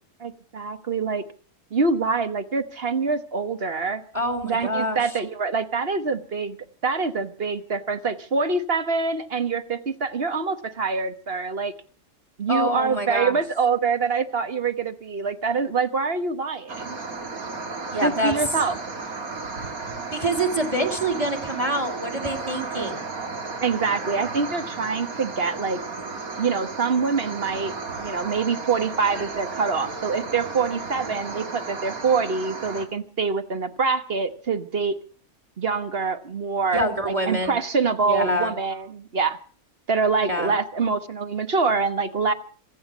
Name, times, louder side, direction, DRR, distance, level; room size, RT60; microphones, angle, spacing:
voice 1, 0.2-1.2 1.7-4.0 4.4-6.6 6.8-11.7 12.4-17.0 18.0-18.8 23.6-25.8 26.4-35.0 35.6-39.4 39.9-42.3, right 4 dB, 45° right, 10 dB, 1.4 m, -25 dB
voice 2, 4.1-5.0 12.5-13.4 17.9-18.3 20.1-23.0 36.7-37.6 38.0-38.5 40.3-40.6, right 1 dB, 25° right, 8 dB, 2.4 m, -26 dB
sound 1, 16.7-32.9, right 3 dB, 70° right, 2.9 m, -34 dB
25.5 x 8.7 x 6.1 m, 0.41 s
omnidirectional pair, 1.5 m